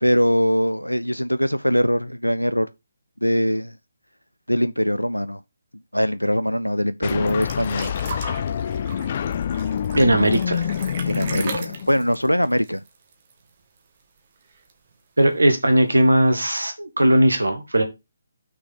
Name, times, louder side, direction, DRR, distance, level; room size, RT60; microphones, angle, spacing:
voice 1, 0.0-2.7 3.2-3.8 4.5-5.4 5.9-7.9 11.0-12.8, equal, 90° left, 0.5 m, -22 dB
sound 1, 7.0-12.2, left 8 dB, 35° left, 0.5 m, -27 dB
sound 2, 7.1-13.5 13.8-13.9 14.2-14.9 15.7-15.8, right 5 dB, 35° right, 1.6 m, -37 dB
voice 2, 9.9-10.6 15.2-17.8, right 1 dB, 75° right, 1.9 m, -18 dB
6.2 x 5.1 x 5.9 m
figure-of-eight pair, 140°, 0 cm